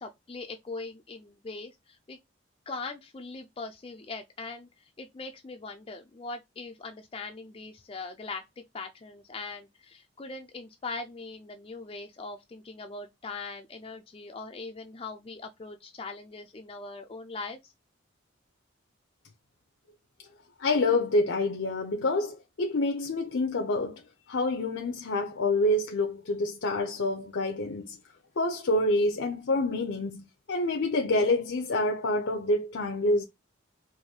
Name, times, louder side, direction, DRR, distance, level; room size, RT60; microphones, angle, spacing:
voice 1, 0.0-2.2 2.7-17.7, left 3 dB, 30° left, 0.4 m, -41 dB
voice 2, 20.6-24.0 24.3-28.0 28.4-30.2 30.5-33.2, left 2 dB, 75° left, 0.6 m, -27 dB
4.7 x 2.6 x 2.8 m
head